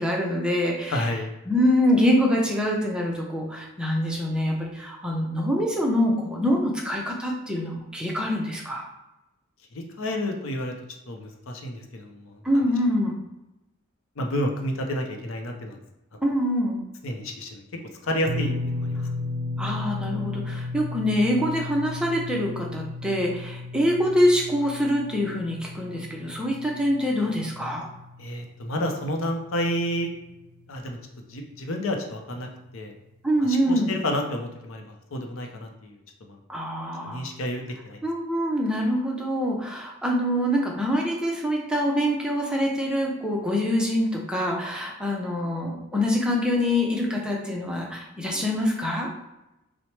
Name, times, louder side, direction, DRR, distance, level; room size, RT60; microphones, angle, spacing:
voice 1, 0.0-1.1 1.5-8.9 12.4-13.2 16.2-16.9 19.6-27.9 33.2-33.9 36.5-37.3 38.0-49.1, equal, 5° right, -2 dB, 0.5 m, -25 dB
voice 2, 0.9-1.3 9.7-10.7 11.1-12.6 14.2-15.8 16.1-16.2 17.0-17.6 18.0-19.0 28.2-30.1 30.7-31.0 31.3-32.9 33.4-36.4 37.0-38.0, left 1 dB, 70° left, 3 dB, 0.6 m, -30 dB
sound 1, 18.2-30.5 30.7-31.0 32.7-32.8, left 2 dB, 90° right, 0.3 m, -35 dB
5.8 x 2.1 x 3.2 m, 0.94 s
head